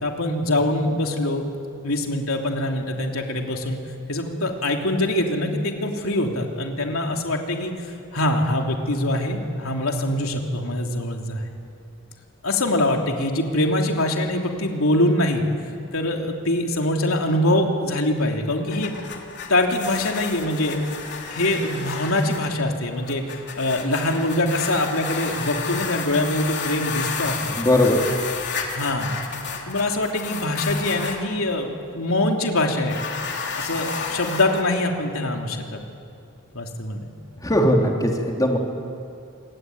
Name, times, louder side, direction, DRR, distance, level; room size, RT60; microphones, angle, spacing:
voice 1, 0.0-1.5 1.8-3.8 4.1-11.4 12.4-15.4 15.9-18.9 19.5-20.8 21.3-23.2 23.6-27.7 28.7-29.2 29.7-33.0 33.5-35.8 36.5-37.1, left 1 dB, 75° left, 2 dB, 3.3 m, -23 dB
sound 1, 18.5-31.2 32.8-34.6, left 5 dB, 55° left, 3.2 m, -32 dB
voice 2, 27.6-28.0 37.4-38.6, left 1 dB, 15° left, 0 dB, 3.5 m, -19 dB
27.0 x 21.5 x 9.7 m, 2.5 s
head